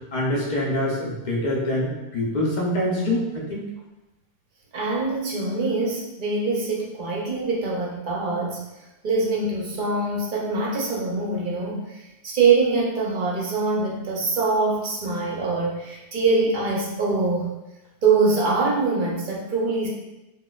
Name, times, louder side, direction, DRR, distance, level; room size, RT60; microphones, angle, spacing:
voice 1, 0.1-3.7, left 1 dB, 50° left, -3 dB, 0.6 m, -25 dB
voice 2, 4.7-8.6 9.0-17.5 18.0-19.9, right 3 dB, 50° right, -2 dB, 0.7 m, -24 dB
4.0 x 2.3 x 2.3 m, 0.97 s
omnidirectional pair, 1.2 m